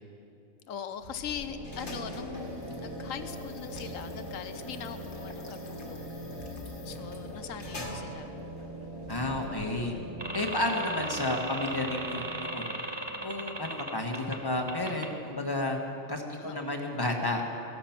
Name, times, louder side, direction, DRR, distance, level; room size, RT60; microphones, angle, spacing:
voice 1, 0.7-6.1 6.8-8.3 9.9-10.1 16.4-16.6, left 8 dB, 75° left, 10 dB, 1.1 m, -41 dB
sound 1, 1.0-10.3, left 2 dB, 55° left, 1.7 m, -46 dB
sound 2, 1.0-14.7, equal, 75° right, 2.3 m, -42 dB
voice 2, 9.1-9.9 10.3-12.7 13.2-15.8 16.1-17.4, left 2 dB, 15° left, 2 dB, 1.4 m, -31 dB
sound 3, 10.2-14.3 14.7-15.1, right 2 dB, 20° right, 0.9 m, -36 dB
16.5 x 13.0 x 5.9 m, 2.6 s
omnidirectional pair, 1.4 m